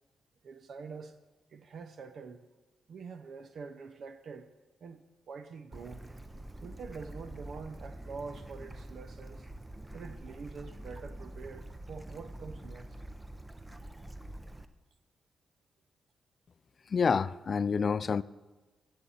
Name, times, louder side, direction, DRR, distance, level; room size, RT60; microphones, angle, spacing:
voice 1, 0.4-1.2 1.5-2.4 2.9-4.5 4.8-6.1 6.6-9.5 9.9-13.0, right 5 dB, 65° right, 0.6 m, -45 dB
Bird / Stream, 5.7-14.7, right 1 dB, 15° right, 0.6 m, -46 dB
voice 2, 16.9-18.2, left 5 dB, 45° left, 0.3 m, -28 dB
15.0 x 7.6 x 4.2 m
cardioid pair, 85°, 0 cm